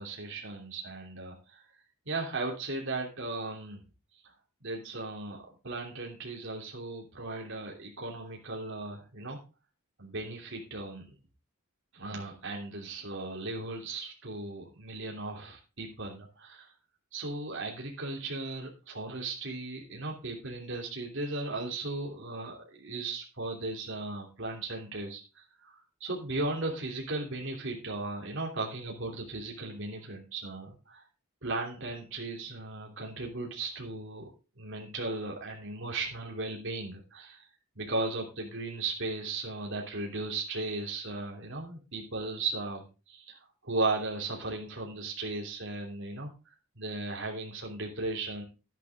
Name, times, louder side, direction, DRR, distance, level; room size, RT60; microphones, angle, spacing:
voice 1, 0.0-1.6 2.1-3.8 4.6-5.4 5.6-9.4 10.0-11.1 11.9-16.7 17.1-25.2 25.6-31.0 31.4-34.3 34.6-37.4 37.8-43.4 43.6-46.3 46.8-48.4, right 2 dB, 60° right, 0 dB, 2.9 m, -36 dB
11.5 x 10.5 x 3.6 m, 0.31 s
head